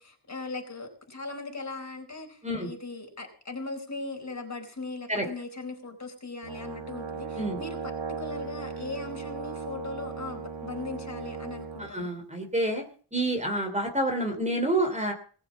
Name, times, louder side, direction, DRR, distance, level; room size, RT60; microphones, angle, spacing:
voice 1, 0.0-12.1, left 3 dB, 40° left, 3 dB, 4.4 m, -39 dB
Brass instrument, 6.4-11.9, right 5 dB, 85° right, 2.0 m, -37 dB
voice 2, 11.8-12.8 13.1-15.1, right 1 dB, 15° right, 4 dB, 3.1 m, -28 dB
19.5 x 7.1 x 7.3 m, 0.43 s
wide cardioid pair, 125°, 44 cm